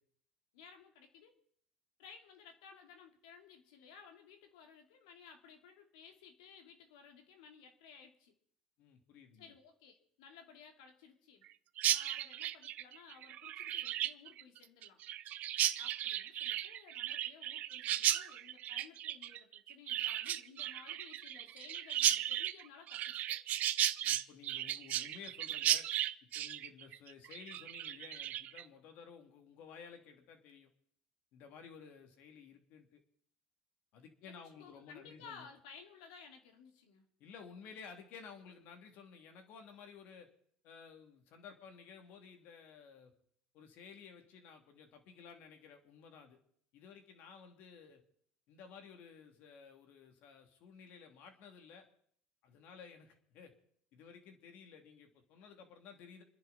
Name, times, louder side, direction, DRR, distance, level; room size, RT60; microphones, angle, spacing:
voice 1, 0.5-1.4 2.0-8.3 9.3-11.4 11.8-15.0 15.8-23.4 34.2-37.1, left 6 dB, 90° left, 4 dB, 2.6 m, -57 dB
voice 2, 8.8-9.5 24.0-25.8 26.3-30.7 31.3-33.0 33.9-35.5 37.2-40.3 40.6-43.1 43.5-46.4 46.7-48.0 48.5-51.9 52.4-53.5 53.9-56.2, left 6 dB, 65° left, 5 dB, 3.0 m, -54 dB
Chirp tweet, 11.8-28.6, right 12 dB, 55° right, 0.7 m, -35 dB
28.0 x 10.5 x 4.3 m, 0.64 s
supercardioid pair, 95°, 3 cm